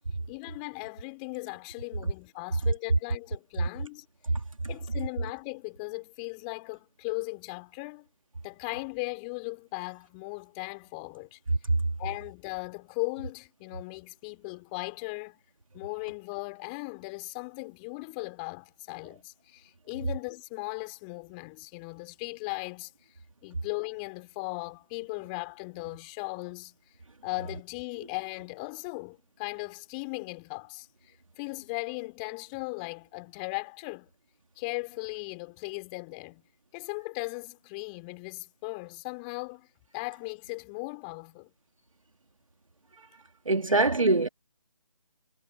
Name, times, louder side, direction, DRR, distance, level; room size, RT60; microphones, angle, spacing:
voice 1, 0.3-4.1 4.7-8.1 8.4-11.4 12.0-15.4 15.7-22.9 23.4-26.8 27.2-34.1 34.6-36.4 36.7-39.7 39.9-41.5, left 31 dB, 15° left, 3.8 m, -38 dB
voice 2, 43.5-44.3, right 2 dB, 65° right, 2.6 m, -23 dB
figure-of-eight pair, 155°, 18 cm